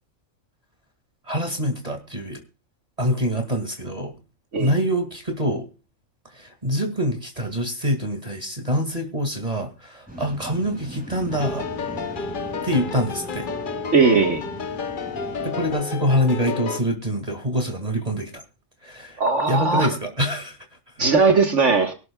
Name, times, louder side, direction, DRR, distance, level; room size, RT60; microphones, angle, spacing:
voice 1, 1.3-2.4 3.0-4.1 4.6-5.7 6.3-11.6 12.6-13.5 15.4-18.4 18.8-19.2 19.5-20.6, equal, 30° right, 2.3 m, -25 dB
Waves surf, 10.1-15.7, right 1 dB, 5° right, 4.8 m, -39 dB
sound 1, 11.3-16.8, left 5 dB, 45° left, 0.9 m, -31 dB
voice 2, 13.9-14.4 19.2-19.9 21.0-21.9, right 4 dB, 65° right, 1.8 m, -18 dB
23.0 x 12.5 x 2.3 m
omnidirectional pair, 1.4 m